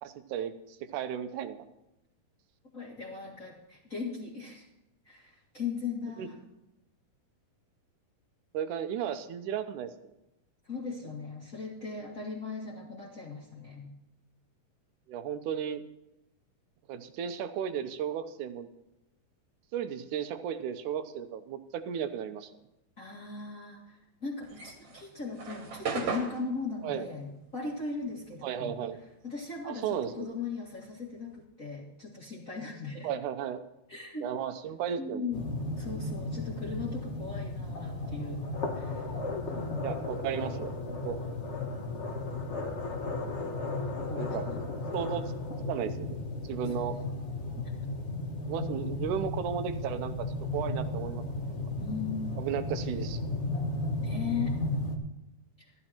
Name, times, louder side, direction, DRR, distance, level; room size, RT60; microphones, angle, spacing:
voice 1, 0.0-1.6 6.2-6.3 8.5-9.9 15.1-15.8 16.9-18.7 19.7-22.5 26.8-27.1 28.4-29.0 29.6-30.3 33.0-33.7 34.2-35.2 39.8-41.2 44.1-44.5 44.9-45.3 45.7-47.0 48.4-51.5 52.4-53.2, right 8 dB, 75° right, 10 dB, 2.2 m, -35 dB
voice 2, 2.7-4.7 5.1-6.4 10.6-13.9 23.0-28.8 29.2-33.1 33.9-34.3 35.0-38.4 38.7-39.1 39.4-40.0 44.0-44.6 46.7-46.9 51.8-52.2 54.0-54.5, left 5 dB, 30° left, -4 dB, 1.9 m, -38 dB
sound 1, 24.4-29.1 29.4-31.4, right 5 dB, 50° right, 2.3 m, -38 dB
sound 2, 35.3-55.0, left 2 dB, 80° left, 0.6 m, -34 dB
14.0 x 12.0 x 4.4 m, 0.90 s
omnidirectional pair, 3.8 m